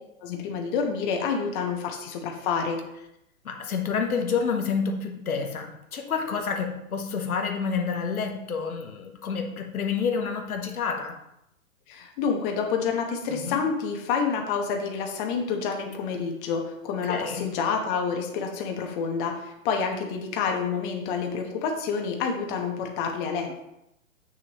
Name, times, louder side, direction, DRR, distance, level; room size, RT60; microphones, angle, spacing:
voice 1, 0.2-2.8 11.9-23.5, left 5 dB, 35° left, 1.3 m, -28 dB
voice 2, 3.4-11.2 13.3-13.6 17.0-17.6, left 5 dB, 85° left, 1.1 m, -29 dB
7.6 x 6.1 x 3.1 m
hypercardioid pair, 130°, 42 cm